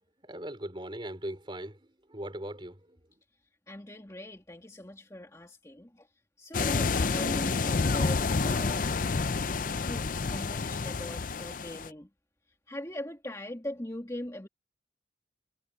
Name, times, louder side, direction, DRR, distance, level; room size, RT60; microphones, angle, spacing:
voice 1, 0.2-3.0, right 1 dB, 25° right, 4.2 m, -40 dB
voice 2, 3.7-6.1 6.4-8.9 9.9-12.1 12.7-14.5, left 1 dB, 15° left, 2.2 m, -41 dB
sound 1, 6.5-11.9, left 4 dB, 45° left, 0.5 m, -29 dB
head